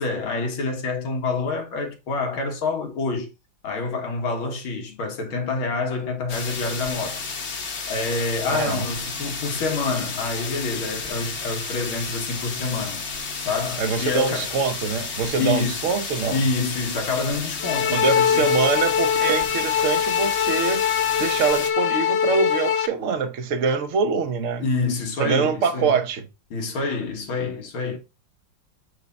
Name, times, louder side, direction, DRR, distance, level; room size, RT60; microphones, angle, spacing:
voice 1, 0.0-3.3 3.6-7.2 7.9-13.1 13.4-14.5 15.4-15.9 16.3-18.5 24.6-26.0 26.5-28.0, left 3 dB, 85° left, 2.4 m, -27 dB
sound 1, 6.3-21.7, left 4 dB, 40° left, 1.1 m, -32 dB
voice 2, 8.5-8.9 13.8-16.4 17.9-20.8 21.2-24.6 25.2-26.3, right 5 dB, 50° right, 1.1 m, -24 dB
sound 2, 17.6-22.9, left 8 dB, 65° left, 1.3 m, -22 dB
8.1 x 3.5 x 4.1 m
omnidirectional pair, 2.2 m